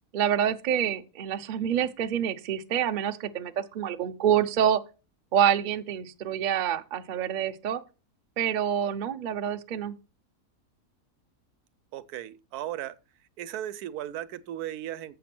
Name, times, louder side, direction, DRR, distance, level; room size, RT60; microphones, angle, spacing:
voice 1, 0.1-4.8 5.3-7.8 8.4-9.9, right 9 dB, 60° right, 0.5 m, -27 dB
voice 2, 11.9-13.0 13.4-15.2, right 12 dB, 80° right, 1.1 m, -36 dB
7.6 x 6.0 x 5.9 m
omnidirectional pair, 1.7 m